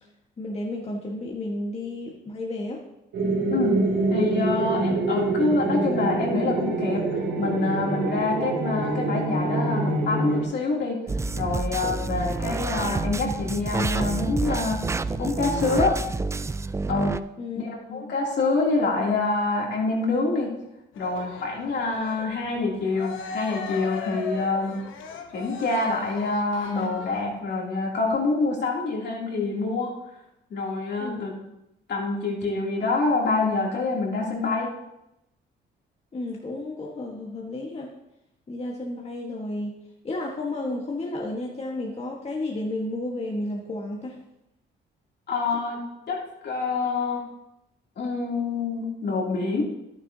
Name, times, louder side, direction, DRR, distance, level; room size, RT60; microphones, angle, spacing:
voice 1, 0.4-2.8 4.6-4.8 17.4-18.1 31.0-31.5 36.1-37.9 38.5-39.8 40.0-44.2 45.5-45.6, left 2 dB, 30° left, -2 dB, 1.4 m, -32 dB
sound 1, 3.1-10.4, right 2 dB, 90° right, 2.6 m, -25 dB
voice 2, 4.1-11.0 11.4-16.0 16.9-17.1 17.5-20.5 21.0-24.8 25.3-29.9 30.5-31.4 31.9-34.7 45.3-47.3 48.0-49.6, left 3 dB, 60° left, -2 dB, 2.8 m, -26 dB
sound 2, 11.1-17.2, right 3 dB, 15° right, 0.3 m, -28 dB
Cheering, 20.9-27.4, left 4 dB, 85° left, 1.0 m, -38 dB
11.0 x 9.9 x 2.8 m, 0.87 s
cardioid pair, 90°, 20 cm